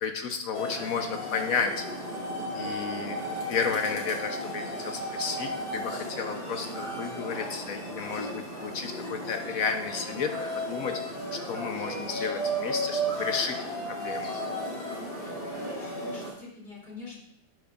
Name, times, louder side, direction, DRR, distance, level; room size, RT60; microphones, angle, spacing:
voice 1, 0.0-2.1 2.5-3.2 3.5-11.2 11.5-13.6 13.9-14.3, left 5 dB, 65° left, 6 dB, 0.8 m, -32 dB
sound 1, 0.5-16.3, equal, 85° left, 3.3 m, -34 dB
voice 2, 15.2-17.2, left 4 dB, 30° left, -6 dB, 3.1 m, -44 dB
12.0 x 7.9 x 2.4 m, 0.79 s
omnidirectional pair, 2.1 m